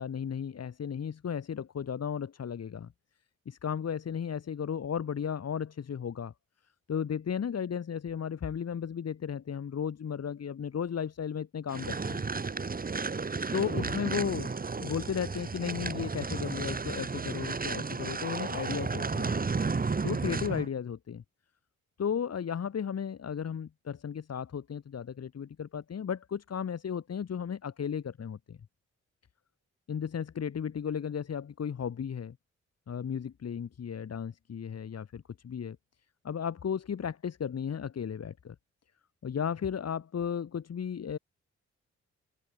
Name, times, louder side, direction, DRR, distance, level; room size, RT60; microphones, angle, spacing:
voice 1, 0.0-2.9 3.4-6.3 6.9-12.2 13.5-19.5 20.0-21.2 22.0-28.6 29.9-32.4 32.9-35.8 36.2-38.5 39.2-41.2, left 7 dB, 55° left, 1.4 m, -35 dB
sound 1, 11.7-20.7, right 4 dB, 30° right, 1.2 m, -33 dB
open air
supercardioid pair, 45°, 30 cm